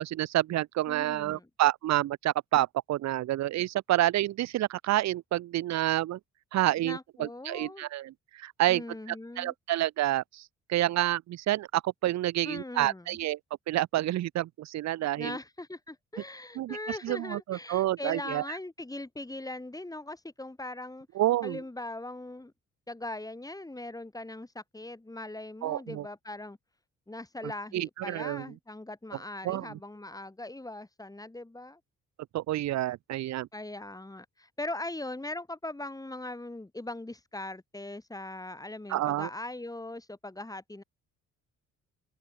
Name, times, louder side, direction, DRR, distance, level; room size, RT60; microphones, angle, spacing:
voice 1, 0.0-6.2 6.5-8.8 9.1-13.4 13.7-15.4 16.6-16.8 17.0-18.4 21.2-21.6 25.6-26.1 27.7-28.4 29.4-29.8 32.3-33.5 38.9-39.3, right 14 dB, 65° right, 0.6 m, -29 dB
voice 2, 0.9-1.5 6.8-7.9 8.7-9.5 12.4-13.2 15.2-21.1 21.4-22.5 22.9-26.6 27.1-31.8 33.5-40.8, left 2 dB, 10° left, 4.6 m, -40 dB
open air
cardioid pair, 90°, 30 cm